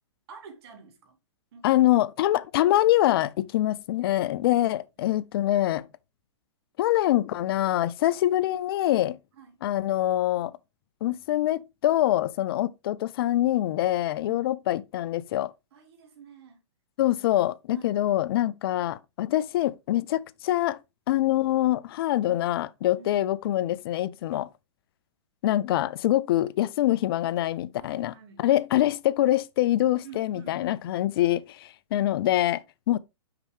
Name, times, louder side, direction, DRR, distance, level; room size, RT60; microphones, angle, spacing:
voice 1, 0.3-1.2 1.5-1.8 5.0-5.3 9.4-9.6 14.2-14.6 15.7-16.6 17.7-18.0 22.9-23.2 27.8-28.5 30.0-30.8, right 5 dB, 55° right, 2.2 m, -48 dB
voice 2, 1.6-5.9 6.8-9.2 9.6-10.6 11.0-15.5 17.0-20.8 21.1-24.5 25.4-33.0, left 14 dB, 50° left, 0.4 m, -25 dB
5.9 x 5.4 x 3.4 m
hypercardioid pair, 130°, 15 cm